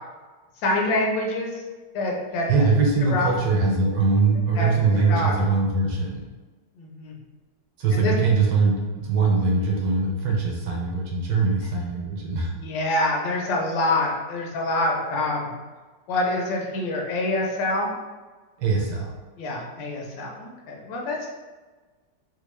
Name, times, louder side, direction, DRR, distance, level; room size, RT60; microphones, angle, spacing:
voice 1, 0.6-1.6 1.9-2.5 3.1-3.4 4.6-5.3 6.8-7.2 7.9-8.1 12.5-15.5 16.1-17.9 19.4-21.3, left 2 dB, 85° left, -1 dB, 1.4 m, -26 dB
voice 2, 2.5-6.2 7.8-12.5 18.6-19.1, right 4 dB, 70° right, -1 dB, 1.0 m, -22 dB
3.4 x 2.3 x 3.0 m, 1.3 s
omnidirectional pair, 2.0 m